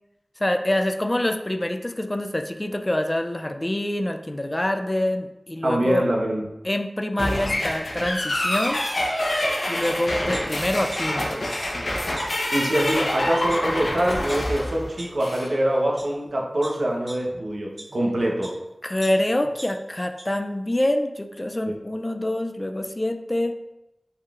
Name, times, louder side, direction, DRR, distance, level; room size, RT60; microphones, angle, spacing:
voice 1, 0.4-6.0 6.6-8.8 9.7-11.4 18.8-23.5, left 1 dB, 30° left, 6 dB, 0.4 m, -26 dB
voice 2, 5.6-6.4 12.5-18.6, right 1 dB, 75° right, -2 dB, 0.9 m, -24 dB
sound 1, 7.2-15.5, left 1 dB, 75° left, 0.9 m, -26 dB
sound 2, 9.8-9.9 10.3-11.2 11.5-11.6 12.2-12.3 12.9-13.0 13.5-13.6 14.1-14.4 15.0-15.1 15.7-16.0 16.6-18.6 19.0-20.2 20.6-20.7, right 1 dB, 35° right, 1.0 m, -41 dB
5.4 x 3.5 x 2.4 m, 0.93 s
wide cardioid pair, 45°, 0 cm